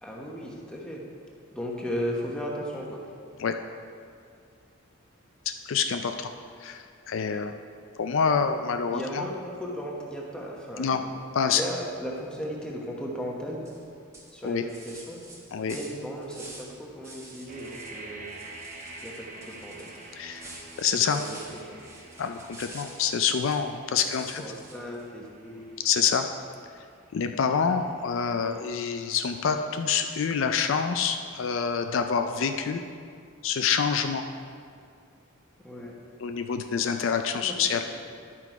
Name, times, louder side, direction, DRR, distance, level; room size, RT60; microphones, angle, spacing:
voice 1, 0.0-1.0 1.5-3.0 8.1-8.3 8.9-11.1 11.4-13.6 14.3-18.3 19.0-19.9 21.1-21.8 24.0-25.7 35.6-36.0 37.4-37.8, equal, 5° left, -2 dB, 1.1 m, -36 dB
voice 2, 5.7-6.3 6.6-7.5 8.0-9.2 10.8-11.0 11.3-11.6 14.4-14.6 15.5-15.8 20.2-20.4 20.8-21.2 22.2-24.4 25.8-26.3 27.1-32.8 33.4-34.2 36.2-37.8, left 6 dB, 60° left, 7 dB, 0.4 m, -26 dB
sound 1, 13.6-13.8 14.1-16.7 17.0-18.0 18.2-23.7 24.1-25.0, right 1 dB, 15° right, 1.1 m, -47 dB
sound 2, 17.5-29.3, right 2 dB, 35° right, 1.0 m, -48 dB
10.5 x 6.0 x 4.6 m, 2.2 s
head